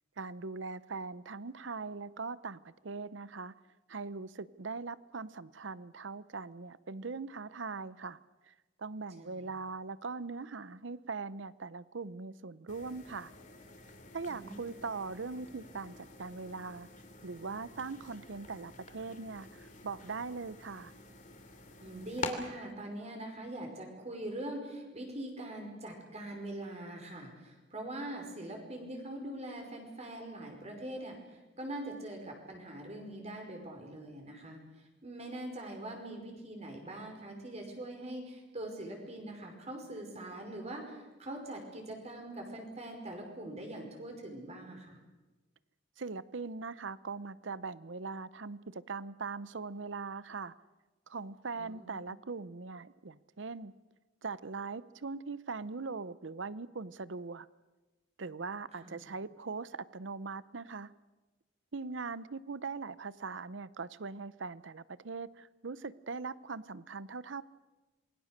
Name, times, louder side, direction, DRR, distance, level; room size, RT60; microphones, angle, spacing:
voice 1, 0.2-3.5 3.9-8.2 8.5-8.6 8.8-13.3 14.1-16.9 17.2-20.9 46.0-50.5 51.1-53.7 54.2-57.5 58.2-60.9 61.7-67.4, right 4 dB, 70° right, 17 dB, 0.8 m, -41 dB
voice 2, 9.2-9.5 14.3-14.6 21.8-34.6 35.0-45.0 51.6-52.0 58.8-59.0, right 1 dB, 35° right, 2 dB, 5.5 m, -43 dB
sound 1, 12.7-22.3, left 4 dB, 45° left, 2.9 m, -48 dB
27.0 x 22.5 x 6.7 m, 1.2 s
head